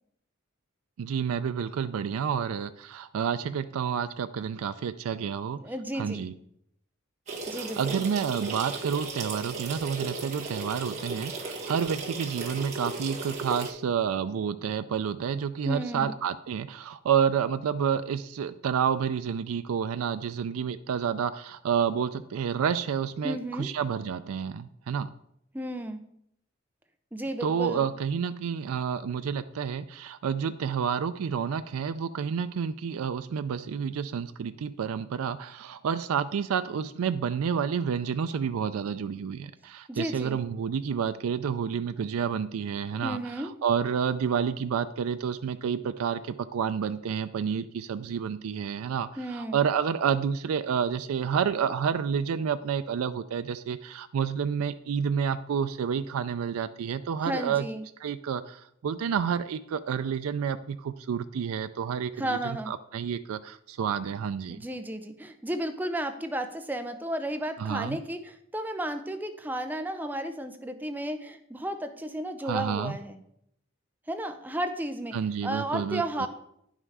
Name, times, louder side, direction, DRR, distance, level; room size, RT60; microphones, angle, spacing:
voice 1, 1.0-5.6 5.9-6.3 7.5-25.1 27.4-57.7 58.0-64.6 67.6-68.0 72.4-73.0 75.1-76.3, right 7 dB, 90° right, 10 dB, 0.4 m, -29 dB
voice 2, 5.5-6.3 7.5-8.0 15.6-16.2 23.2-23.7 25.5-26.1 27.1-27.9 39.9-40.4 43.0-43.5 49.2-49.6 57.2-57.9 62.2-62.7 64.5-73.2 74.1-75.2 75.4-76.3, right 1 dB, 10° right, 8 dB, 0.5 m, -33 dB
sound 1, 7.3-13.7, right 3 dB, 35° right, 1.6 m, -36 dB
9.7 x 5.6 x 4.7 m, 0.74 s
head